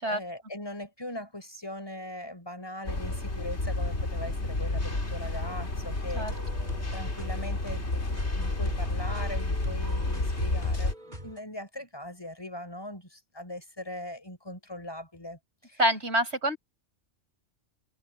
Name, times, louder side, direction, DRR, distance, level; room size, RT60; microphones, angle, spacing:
voice 1, 0.0-6.3 6.9-15.8, left 1 dB, 20° left, 6.5 m, -40 dB
sound 1, 2.8-10.9, left 2 dB, 65° left, 3.3 m, -30 dB
sound 2, 6.3-11.4, equal, 40° right, 7.8 m, -44 dB
voice 2, 15.8-16.6, equal, 65° right, 8.2 m, -26 dB
omnidirectional pair, 1.2 m